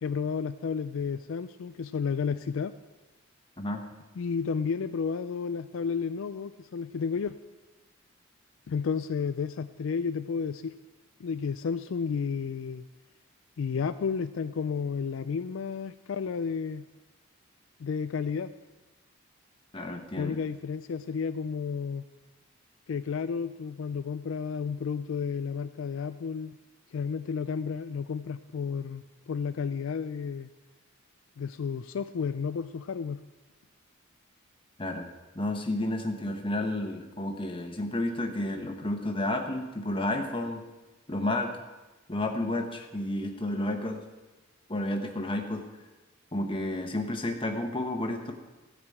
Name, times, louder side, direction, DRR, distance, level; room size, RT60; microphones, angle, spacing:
voice 1, 0.0-2.7 4.2-7.4 8.7-10.7 11.2-12.9 13.6-16.8 17.8-18.5 20.2-22.0 22.9-26.6 26.9-30.5 31.4-33.2, left 6 dB, 70° left, 11 dB, 0.4 m, -32 dB
voice 2, 19.7-20.4 34.8-35.1 35.3-40.6 41.1-41.5 42.1-44.0 44.7-45.7 46.3-48.3, left 1 dB, 25° left, 4 dB, 1.2 m, -31 dB
14.5 x 5.0 x 8.6 m, 1.1 s
head